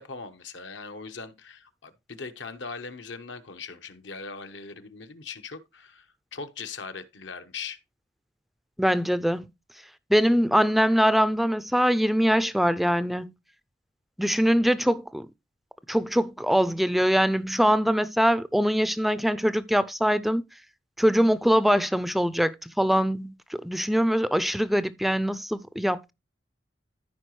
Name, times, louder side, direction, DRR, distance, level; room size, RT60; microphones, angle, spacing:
voice 1, 0.0-7.8, left 4 dB, 75° left, 1.0 m, -40 dB
voice 2, 8.8-9.4 10.1-13.3 14.2-15.3 15.9-20.4 21.0-26.1, equal, ahead, 0.4 m, -23 dB
14.5 x 4.8 x 3.1 m
head